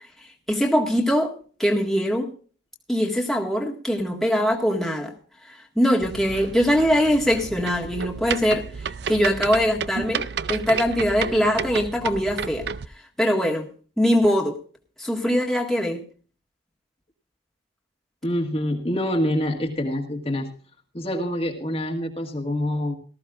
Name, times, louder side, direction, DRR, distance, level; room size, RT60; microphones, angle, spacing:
voice 1, 0.5-2.3 2.9-5.1 5.5-8.6 9.1-12.7 13.2-13.7 14.0-14.6 15.0-16.0, equal, ahead, -1 dB, 1.8 m, -22 dB
sound 1, 6.0-12.9, right 6 dB, 60° right, 0.5 m, -31 dB
voice 2, 18.2-20.5 20.9-22.9, left 1 dB, 30° left, 2 dB, 1.8 m, -26 dB
18.5 x 14.0 x 2.5 m, 0.40 s
head